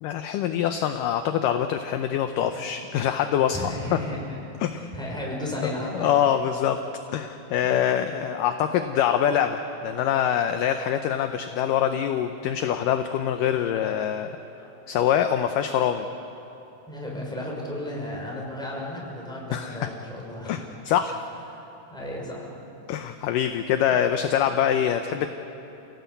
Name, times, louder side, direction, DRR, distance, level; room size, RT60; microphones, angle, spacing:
voice 1, 0.0-3.7 4.6-4.8 5.6-6.8 7.1-14.4 14.9-16.1 19.5-19.9 20.5-20.6 20.9-21.3 22.9-25.3, left 9 dB, 75° left, 7 dB, 2.2 m, -24 dB
voice 2, 3.5-4.4 4.7-6.2 16.9-20.7 21.5-21.6 21.9-22.6, left 1 dB, ahead, -3 dB, 5.5 m, -34 dB
28.5 x 17.5 x 8.4 m, 3.0 s
omnidirectional pair, 4.4 m